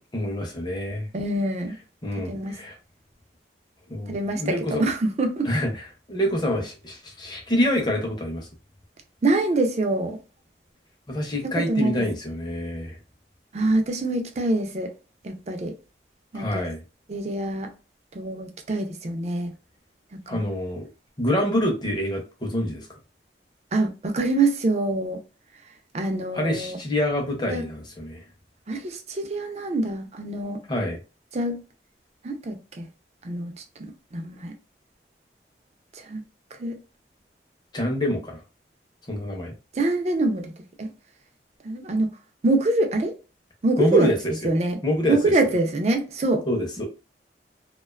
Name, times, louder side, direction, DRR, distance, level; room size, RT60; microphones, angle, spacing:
voice 1, 0.1-1.1 2.0-2.8 3.9-4.8 5.4-5.8 6.1-8.5 11.1-13.0 16.3-16.8 20.3-20.9 21.2-22.9 26.3-28.2 30.7-31.0 37.7-38.4 39.1-39.5 43.8-44.3 44.8-45.3 46.5-46.8, left 1 dB, 25° left, 0.6 m, -26 dB
voice 2, 1.1-1.8 2.2-2.6 4.1-5.5 9.2-10.2 11.7-12.0 13.5-14.9 15.2-15.7 16.3-16.6 17.1-17.7 18.1-19.5 20.1-20.4 23.7-25.2 25.9-26.8 27.5-27.7 28.7-30.6 31.3-31.6 32.2-32.9 33.2-33.5 33.8-34.5 35.9-36.2 36.6-36.8 39.7-40.5 40.8-40.9 41.6-42.1 42.4-43.2 43.6-44.1 44.4-44.8 45.1-46.5, right 2 dB, 40° right, 0.4 m, -25 dB
2.4 x 2.2 x 2.3 m
head